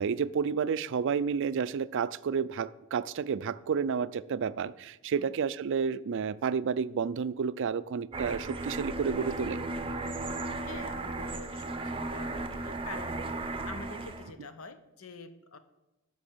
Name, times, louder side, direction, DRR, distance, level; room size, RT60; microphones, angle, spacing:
voice 1, 0.0-9.6, right 6 dB, 60° right, 0.4 m, -30 dB
sound 1, 8.1-14.3, right 2 dB, 25° right, 0.7 m, -35 dB
voice 2, 10.6-15.6, left 3 dB, 75° left, 1.0 m, -46 dB
11.5 x 5.9 x 6.8 m
head